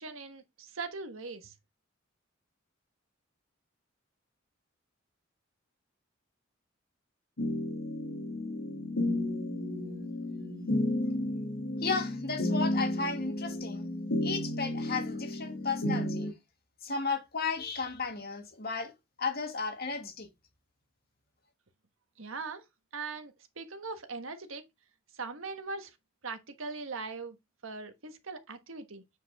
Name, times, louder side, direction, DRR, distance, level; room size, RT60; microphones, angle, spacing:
voice 1, 0.0-1.5 22.2-22.6 22.9-24.6 25.1-25.9 26.2-27.4 27.6-29.0, right 4 dB, 90° right, 1.4 m, -40 dB
sound 1, 7.4-16.3, left 1 dB, 90° left, 2.0 m, -32 dB
voice 2, 11.8-13.9 14.2-16.3 16.8-18.9 19.2-20.3, left 4 dB, 50° left, 1.9 m, -34 dB
8.4 x 5.1 x 3.5 m
head